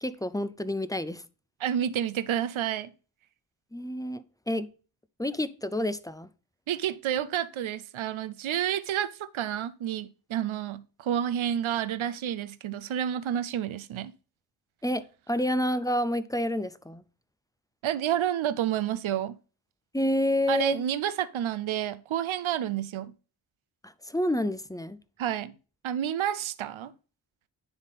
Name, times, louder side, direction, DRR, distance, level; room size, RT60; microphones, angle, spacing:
voice 1, 0.0-1.2 3.7-4.7 5.2-6.3 14.8-17.0 19.9-20.8 23.8-25.0, left 1 dB, 10° left, 0.4 m, -29 dB
voice 2, 1.6-2.9 6.7-14.1 17.8-19.4 20.5-23.1 25.2-25.5 25.8-26.9, right 10 dB, 90° right, 0.5 m, -29 dB
10.0 x 3.6 x 4.1 m
wide cardioid pair, 70°, 46 cm